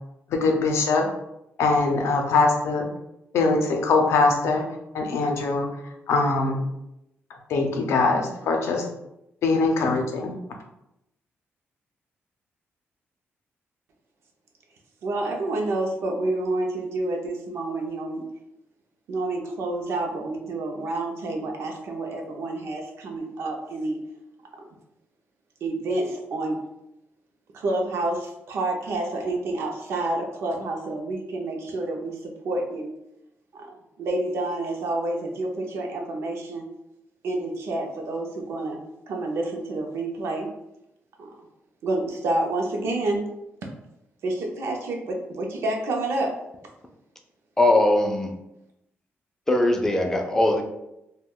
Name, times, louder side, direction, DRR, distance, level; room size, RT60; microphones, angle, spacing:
voice 1, 0.3-1.1 1.6-2.8 3.3-4.6 4.9-5.7 6.1-6.6 7.5-8.8 9.4-10.4, left 3 dB, 85° left, 3 dB, 0.5 m, -22 dB
voice 2, 15.0-18.2 19.1-24.0 25.6-26.6 27.5-32.2 32.4-32.9 34.0-36.7 37.2-38.8 39.1-40.5 41.2-41.3 41.8-43.3 44.2-46.3, right 2 dB, 70° right, 1 dB, 0.5 m, -28 dB
voice 3, 47.6-48.3 49.5-50.6, left 1 dB, 10° left, 2 dB, 0.3 m, -20 dB
2.3 x 2.1 x 3.5 m, 0.86 s
wide cardioid pair, 175°, 5 cm